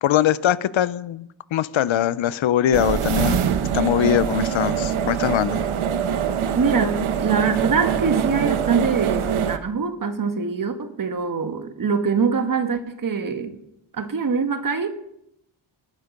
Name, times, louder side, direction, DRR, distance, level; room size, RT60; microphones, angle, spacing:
voice 1, 0.0-3.4 3.7-5.6, left 11 dB, 70° left, 0.7 m, -22 dB
sound 1, 2.7-9.6, right 8 dB, 85° right, 1.0 m, -23 dB
voice 2, 6.5-13.6 13.9-14.9, right 5 dB, 40° right, 1.3 m, -23 dB
19.0 x 9.7 x 5.3 m
wide cardioid pair, 140°, 48 cm